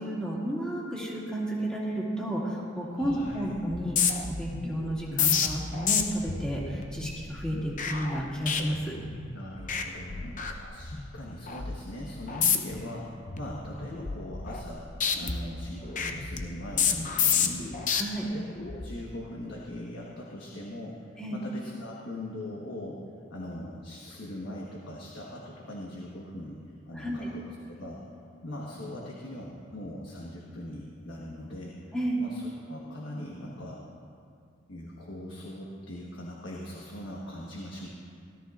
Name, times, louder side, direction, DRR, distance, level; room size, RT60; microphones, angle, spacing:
voice 1, 0.0-8.9 17.9-18.2 21.2-21.4 26.9-27.3 31.9-32.2, right 1 dB, 5° left, -6 dB, 2.3 m, -32 dB
voice 2, 3.0-3.4 5.1-5.3 9.3-14.8 15.2-17.9 18.2-23.0 23.3-26.6 26.9-28.0 28.4-31.8 32.2-33.8 34.7-37.9, left 1 dB, 75° left, -3 dB, 1.4 m, -41 dB
sound 1, 3.0-3.3 3.6-9.3 9.6-9.8 10.1-11.1 11.5-11.7 12.3-12.8 13.2-14.7 15.0-18.0 18.6-18.9, left 6 dB, 45° left, 0.8 m, -30 dB
17.5 x 13.0 x 2.5 m, 2.3 s
head